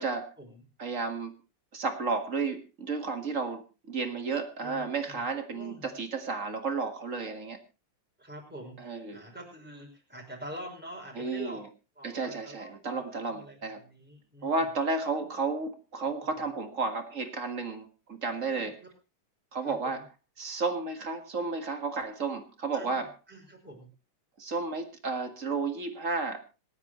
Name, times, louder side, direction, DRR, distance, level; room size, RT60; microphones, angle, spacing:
voice 1, 0.0-0.3 0.8-1.3 1.7-7.6 8.8-9.2 11.2-11.6 12.0-13.8 14.4-18.8 19.5-20.0 20.4-23.1 24.4-26.4, right 4 dB, 40° right, 7 dB, 1.9 m, -32 dB
voice 2, 4.6-5.2 5.5-5.9 8.2-11.6 12.0-14.6 15.2-15.3 18.3-18.9 19.6-20.0 22.7-23.0 23.3-23.9, right 1 dB, 5° right, -1 dB, 5.3 m, -46 dB
26.5 x 9.6 x 3.1 m, 0.32 s
omnidirectional pair, 2.4 m